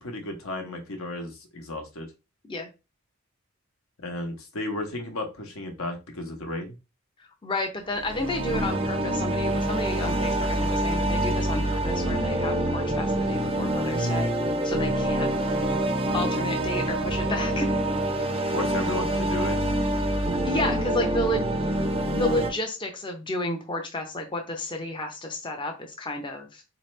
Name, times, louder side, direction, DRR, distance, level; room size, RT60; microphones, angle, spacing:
voice 1, 0.0-2.1 4.0-6.7 14.9-15.1 18.5-19.6, left 2 dB, 70° left, 4 dB, 1.0 m, -34 dB
voice 2, 7.4-14.3 14.6-15.3 16.1-17.7 20.4-21.5 22.1-26.6, left 1 dB, 20° left, 3 dB, 0.5 m, -31 dB
sound 1, 7.9-22.5, right 1 dB, 25° right, 0.5 m, -26 dB
4.1 x 2.9 x 3.1 m, 0.28 s
head